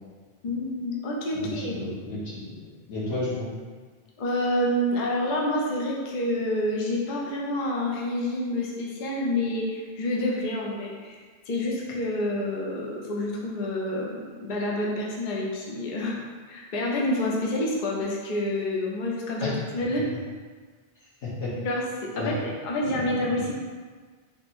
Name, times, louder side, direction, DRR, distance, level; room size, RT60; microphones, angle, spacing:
voice 1, 0.4-1.8 4.2-11.2 11.5-16.2 16.5-20.1 21.6-22.4 22.6-23.5, left 1 dB, 50° left, -2 dB, 0.7 m, -28 dB
voice 2, 1.3-2.5 2.9-3.5 19.4-19.6 21.2-21.5 22.2-22.3 22.8-23.5, left 2 dB, 90° left, -9 dB, 1.7 m, -32 dB
3.4 x 2.8 x 4.2 m, 1.5 s
omnidirectional pair, 1.2 m